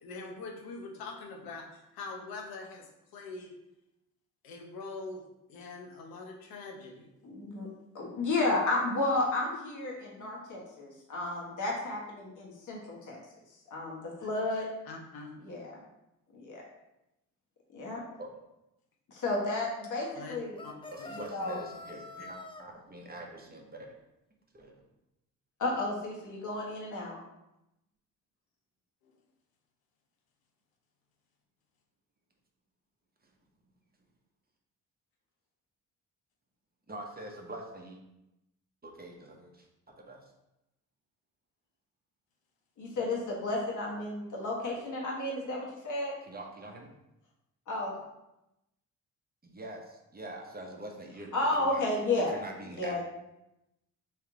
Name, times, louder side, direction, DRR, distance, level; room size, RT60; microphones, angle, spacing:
voice 1, 0.0-2.8 3.1-3.5 4.4-5.2 5.5-7.1 10.2-10.3 14.9-15.3 20.2-20.4 20.6-20.7 21.0-21.1, left 3 dB, 70° left, 1 dB, 0.9 m, -43 dB
voice 2, 7.2-7.7 7.9-13.2 13.7-14.7 15.4-15.8 16.3-16.6 17.7-18.0 19.1-20.6 21.1-21.6 25.6-27.2 42.8-46.2 47.7-47.9 51.3-52.4 52.7-53.0, left 2 dB, 55° left, -3 dB, 1.4 m, -32 dB
sound 1, 20.5-22.6, left 3 dB, 15° left, 0.3 m, -46 dB
voice 3, 20.9-23.9 24.5-24.8 36.9-38.0 38.8-40.2 46.3-46.9 49.4-53.0, right 1 dB, 25° right, 0 dB, 0.8 m, -45 dB
3.3 x 3.2 x 3.7 m, 0.90 s
supercardioid pair, 60°, 37 cm